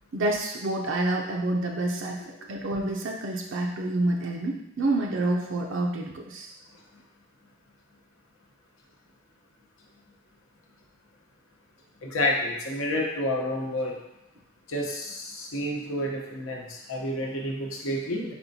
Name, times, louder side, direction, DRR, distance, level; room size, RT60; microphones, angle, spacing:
voice 1, 0.1-2.2 2.5-6.5, right 2 dB, 60° right, 0 dB, 0.5 m, -28 dB
voice 2, 12.0-14.0 14.7-18.3, left 1 dB, 80° left, -1 dB, 0.9 m, -29 dB
4.4 x 4.3 x 2.7 m, 0.90 s
head